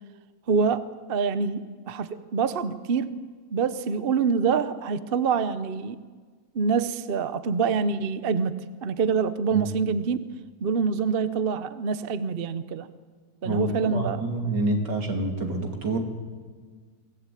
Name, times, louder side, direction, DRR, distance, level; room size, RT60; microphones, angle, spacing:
voice 1, 0.5-0.8 1.1-3.1 3.5-6.0 6.5-10.2 10.6-12.9 13.4-14.2, right 5 dB, 45° right, 13 dB, 0.9 m, -26 dB
voice 2, 13.4-16.0, right 2 dB, 80° right, 3 dB, 3.3 m, -27 dB
23.0 x 16.5 x 9.2 m, 1.6 s
omnidirectional pair, 1.8 m